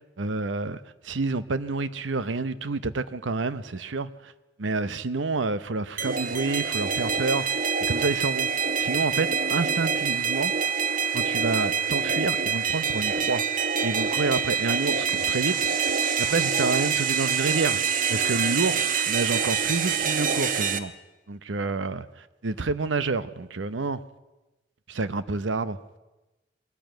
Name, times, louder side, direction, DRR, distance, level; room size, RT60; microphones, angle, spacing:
voice 1, 0.2-4.3 4.6-8.5 8.8-10.5 11.1-13.4 13.8-20.9 21.3-24.0 24.9-25.7, right 3 dB, 80° right, 0.8 m, -29 dB
sound 1, 6.0-20.8, right 6 dB, 45° right, 1.1 m, -26 dB
22.0 x 14.0 x 9.2 m
head